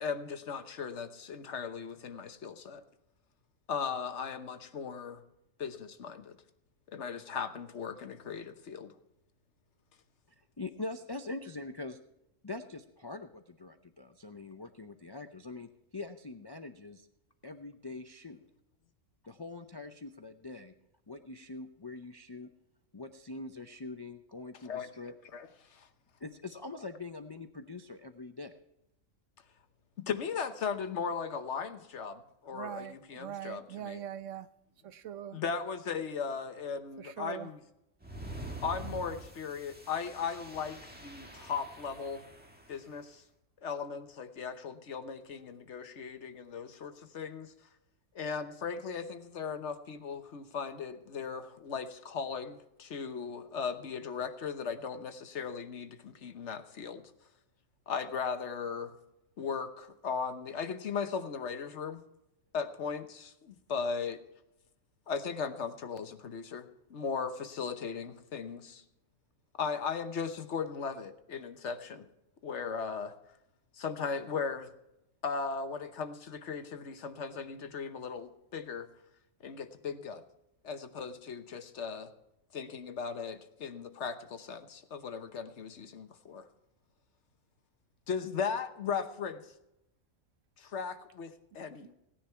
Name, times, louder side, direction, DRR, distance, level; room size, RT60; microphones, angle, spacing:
voice 1, 0.0-2.8 3.7-5.2 5.6-6.4 6.9-8.9 24.6-24.9 25.3-25.9 30.1-34.0 35.3-37.6 38.6-42.2 42.7-43.2 43.6-47.5 48.1-57.0 57.9-58.9 59.4-62.0 62.5-64.2 65.1-68.8 69.6-72.1 72.4-73.1 73.7-74.7 75.2-78.9 79.4-80.2 80.6-82.1 82.5-86.5 88.1-89.4 90.6-92.0, left 6 dB, 65° left, 9 dB, 1.2 m, -37 dB
voice 2, 10.4-12.0 12.4-17.1 17.4-18.4 19.2-20.7 21.1-22.5 22.9-25.2 26.2-28.5, left 3 dB, 35° left, 7 dB, 0.4 m, -43 dB
voice 3, 32.5-34.5 34.8-35.4 37.0-37.5, right 10 dB, 75° right, 13 dB, 1.0 m, -42 dB
sound 1, 38.0-42.9, right 2 dB, 5° right, 1.4 m, -46 dB
17.0 x 10.0 x 4.5 m, 0.86 s
omnidirectional pair, 1.3 m